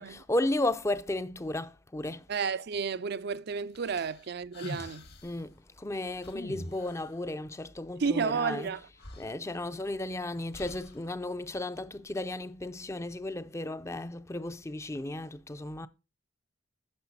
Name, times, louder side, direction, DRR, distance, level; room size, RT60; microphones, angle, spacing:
voice 1, 0.0-2.3 5.2-8.8 9.2-15.9, left 1 dB, 15° left, 0.5 m, -34 dB
voice 2, 2.3-5.0 8.0-8.9, right 5 dB, 55° right, 0.5 m, -31 dB
sound 1, 3.8-5.4 6.2-7.2 8.7-8.8 9.0-10.0 10.5-11.1, left 1 dB, 55° left, 1.6 m, -44 dB
9.7 x 6.2 x 4.2 m
head